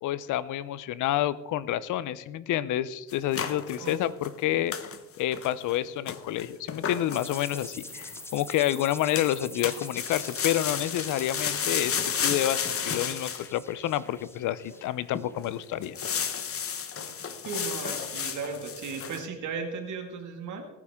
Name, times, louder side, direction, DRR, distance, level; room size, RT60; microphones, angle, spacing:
voice 1, 0.0-4.7 5.2-16.0, left 12 dB, 85° left, 17 dB, 0.7 m, -29 dB
sound 1, 3.1-4.4 4.7-5.0 5.3-5.8 6.1-8.2 9.1-9.4 9.6-13.5 14.1-14.2 14.7-14.8 15.1-15.4 15.8-19.2, left 7 dB, 50° left, 1.2 m, -32 dB
sound 2, 7.1-15.6, left 2 dB, 10° left, 0.6 m, -45 dB
voice 2, 17.4-20.6, right 5 dB, 75° right, 3 dB, 2.2 m, -36 dB
19.0 x 9.7 x 3.7 m, 1.1 s
cardioid pair, 90°, 30 cm